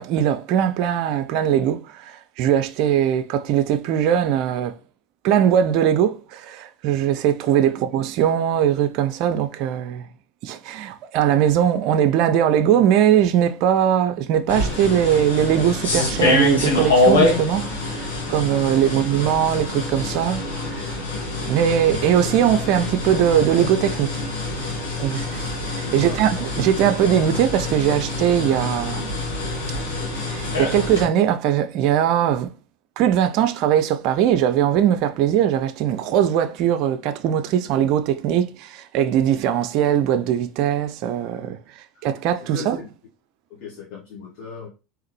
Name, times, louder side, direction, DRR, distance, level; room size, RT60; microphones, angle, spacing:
voice 1, 0.0-4.7 5.2-10.1 10.4-20.8 21.5-24.2 25.0-29.2 30.2-32.5 33.0-41.6 42.0-42.8, right 10 dB, 55° right, 0.4 m, -20 dB
sound 1, 14.5-31.0, left 2 dB, 80° left, 1.5 m, -25 dB
voice 2, 25.8-26.2 41.9-42.9 43.5-44.7, left 6 dB, 55° left, 1.2 m, -39 dB
3.7 x 3.0 x 3.1 m
hypercardioid pair, 80°, 0 cm